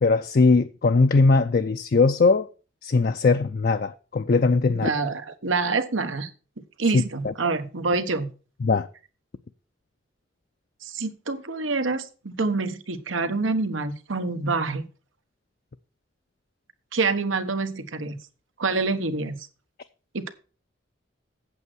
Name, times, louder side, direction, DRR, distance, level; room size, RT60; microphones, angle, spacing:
voice 1, 0.0-2.5 2.8-4.9 8.6-8.9, left 3 dB, 50° left, 0.4 m, -20 dB
voice 2, 4.8-6.3 6.8-8.3 10.8-14.8 16.9-18.2 18.6-19.4 20.1-20.3, right 3 dB, 90° right, 1.2 m, -26 dB
8.3 x 7.8 x 6.2 m
head